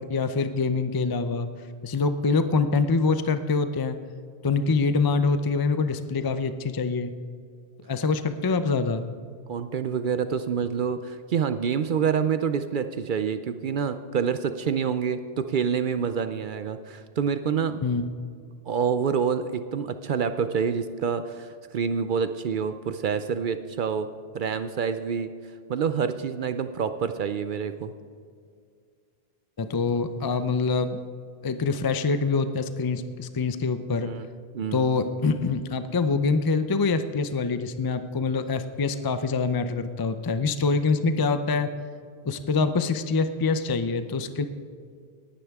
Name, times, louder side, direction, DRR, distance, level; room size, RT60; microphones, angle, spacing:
voice 1, 0.0-1.5 1.8-4.0 4.4-7.1 7.9-9.1 17.8-18.1 29.6-31.0 31.4-34.1 34.7-41.7 42.2-44.5, left 4 dB, 35° left, 10 dB, 0.4 m, -25 dB
voice 2, 9.5-17.8 18.7-24.1 24.3-25.3 25.7-27.9 34.0-34.3 34.5-34.8, right 7 dB, 60° right, 10 dB, 0.7 m, -27 dB
19.0 x 10.0 x 3.5 m, 2.2 s
omnidirectional pair, 1.1 m